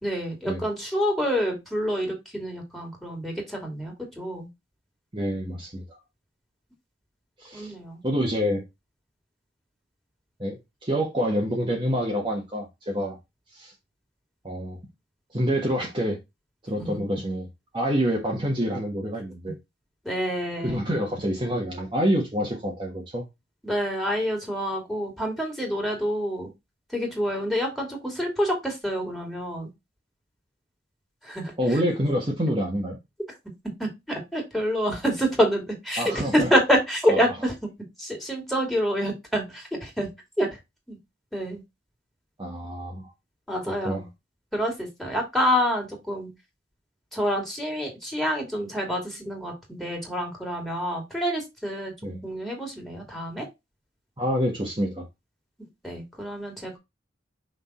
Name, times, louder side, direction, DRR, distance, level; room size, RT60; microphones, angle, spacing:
voice 1, 0.0-4.5 7.5-8.0 16.8-17.0 20.0-20.9 23.6-26.5 26.9-29.7 31.2-31.8 33.8-37.5 38.0-40.1 40.4-40.5 40.9-41.0 41.3-41.6 43.5-44.1 44.5-46.3 47.1-51.9 52.2-53.5 55.8-56.8, equal, ahead, 2.7 m, -27 dB
voice 2, 5.1-5.8 7.4-7.7 8.0-8.6 10.4-13.2 13.5-13.7 14.4-14.8 15.3-16.2 16.6-17.5 17.7-19.5 20.6-23.2 31.6-33.0 36.0-36.5 37.1-37.2 42.4-43.1 43.8-44.0 52.0-52.2 54.2-55.1, equal, 25° right, 1.4 m, -27 dB
6.0 x 3.8 x 4.2 m
head